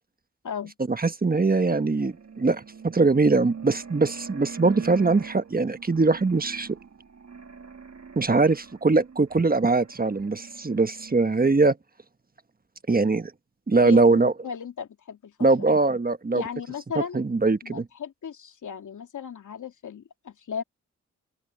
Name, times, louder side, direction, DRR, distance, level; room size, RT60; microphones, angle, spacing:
voice 1, 0.9-6.8 8.2-11.7 12.9-13.3 13.7-14.3 15.4-16.4 17.1-17.9, right 3 dB, 30° right, 1.3 m, -22 dB
sound 1, 1.6-11.5, right 6 dB, 55° right, 2.2 m, -43 dB
voice 2, 13.8-15.3 15.6-15.7 16.3-17.2 17.6-20.6, left 7 dB, 70° left, 2.8 m, -36 dB
open air
supercardioid pair, 50°, 31 cm